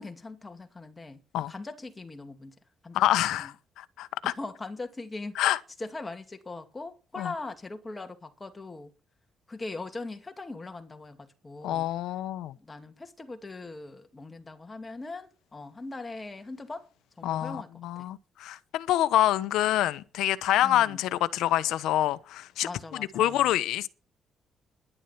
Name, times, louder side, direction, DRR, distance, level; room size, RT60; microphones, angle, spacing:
voice 1, 0.0-1.2 1.5-2.5 2.8-3.0 3.3-3.5 4.2-5.3 5.8-8.9 9.5-11.9 12.6-16.9 17.2-17.7 18.0-18.1 20.6-21.0 22.6-23.5, left 3 dB, 20° left, 2.4 m, -40 dB
voice 2, 2.9-4.3 5.4-5.6 7.2-7.3 11.6-12.6 17.2-23.9, left 13 dB, 85° left, 0.9 m, -27 dB
11.0 x 11.0 x 5.7 m
cardioid pair, 90°, 0 cm